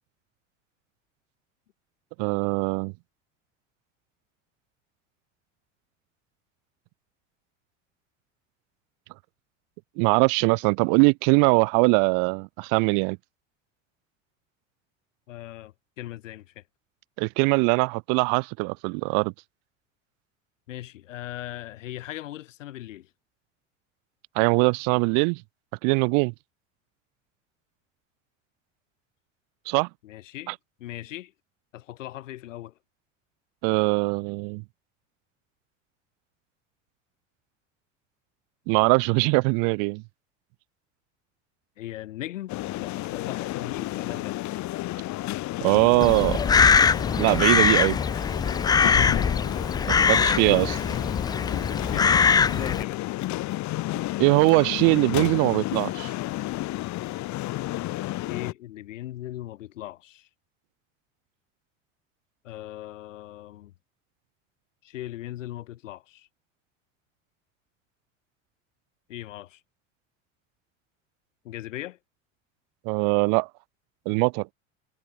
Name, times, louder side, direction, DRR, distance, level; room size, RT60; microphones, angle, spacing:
voice 1, 2.2-2.9 10.0-13.2 17.2-19.3 24.4-25.4 25.8-26.3 29.7-29.9 30.5-30.6 33.6-34.6 38.7-40.0 45.6-46.4 47.2-48.0 49.9-50.8 54.2-56.1 72.9-73.5 74.1-74.5, right 40 dB or more, 55° right, 0.7 m, -22 dB
voice 2, 15.3-16.6 20.7-23.1 30.0-31.3 31.7-32.7 41.8-44.4 48.8-49.3 49.7-50.4 51.7-53.1 58.0-60.3 62.4-63.7 64.8-66.3 69.1-69.6 71.4-72.0, left 14 dB, 80° left, 1.1 m, -39 dB
sound 1, 42.5-58.5, left 17 dB, 50° left, 1.6 m, -31 dB
Crow, 46.0-52.8, left 6 dB, 10° left, 0.3 m, -22 dB
hypercardioid pair, 75°, 38 cm